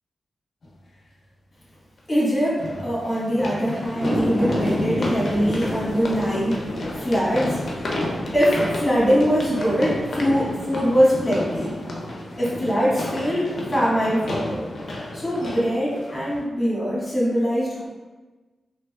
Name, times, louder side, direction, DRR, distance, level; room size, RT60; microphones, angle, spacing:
sound 1, 0.6-0.7 2.6-16.4, left 1 dB, 60° left, 0.5 m, -32 dB
voice 1, 2.1-8.0 8.3-11.7 12.4-14.7 15.1-17.9, equal, 20° left, -7 dB, 1.4 m, -22 dB
sound 2, 3.9-10.4 10.8-10.9, equal, ahead, 0.8 m, -31 dB
3.3 x 2.5 x 2.3 m, 1.2 s
cardioid pair, 85°, 0 cm